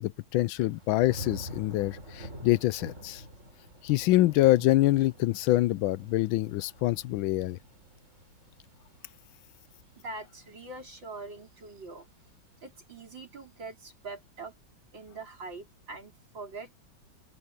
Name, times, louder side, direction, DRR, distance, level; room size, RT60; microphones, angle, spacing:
voice 1, 0.0-3.2 3.8-7.6, left 16 dB, 85° left, 1.4 m, -25 dB
Thunder / Rain, 0.6-11.5 11.9-12.4, right 1 dB, 35° right, 7.0 m, -48 dB
voice 2, 10.0-12.1 12.6-14.5 14.9-16.7, right 3 dB, 70° right, 5.0 m, -43 dB
open air
omnidirectional pair, 2.1 m